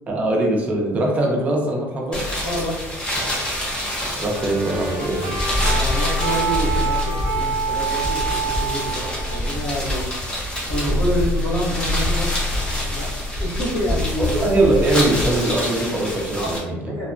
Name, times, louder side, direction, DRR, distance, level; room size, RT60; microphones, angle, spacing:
voice 1, 0.1-2.2 4.2-5.4 14.2-17.0, right 1 dB, 30° right, 0 dB, 0.5 m, -21 dB
sound 1, 2.1-16.6, equal, 20° left, 0.8 m, -29 dB
voice 2, 2.4-2.9 5.6-10.1 10.7-12.3 12.9-13.1 13.4-14.3 16.4-16.6 16.9-17.1, equal, 85° left, -4 dB, 0.9 m, -27 dB
sound 2, 4.2-9.7, right 5 dB, 85° right, 0.5 m, -27 dB
sound 3, 4.9-15.5, left 2 dB, 60° left, 0.8 m, -26 dB
2.8 x 2.1 x 2.5 m, 1.1 s
cardioid pair, 155°, 5 cm